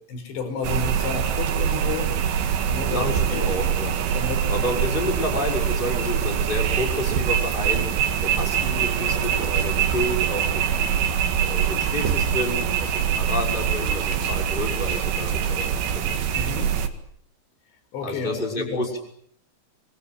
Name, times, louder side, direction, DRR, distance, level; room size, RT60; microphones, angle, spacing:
voice 1, 0.1-3.5 4.1-4.5 16.3-16.8 17.9-18.9, left 4 dB, 65° left, 8 dB, 7.0 m, -32 dB
sound 1, 0.6-16.9, right 8 dB, 85° right, 4.5 m, -24 dB
voice 2, 2.9-4.2 4.5-10.8 11.4-16.1 18.0-19.0, left 1 dB, 10° left, 2 dB, 5.7 m, -30 dB
29.0 x 23.5 x 7.8 m, 0.65 s
omnidirectional pair, 5.4 m